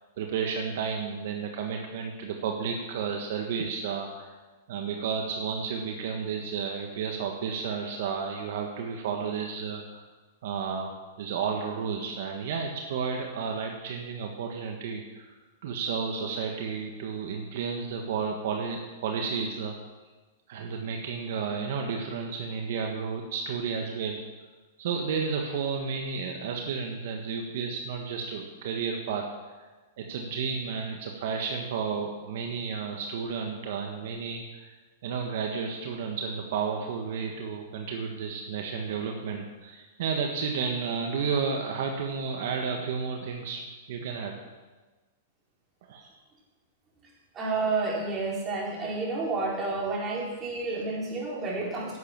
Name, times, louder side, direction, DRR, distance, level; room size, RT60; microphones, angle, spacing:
voice 1, 0.2-4.3 4.7-10.0 10.4-19.8 20.5-24.2 24.8-29.3 29.6-29.7 30.0-34.7 35.0-43.6 43.9-44.4 45.9-46.1, right 6 dB, 65° right, 2 dB, 1.5 m, -32 dB
voice 2, 47.3-52.0, right 3 dB, 25° right, -4 dB, 4.2 m, -30 dB
11.0 x 8.0 x 7.4 m, 1.3 s
hypercardioid pair, 125°, 0 cm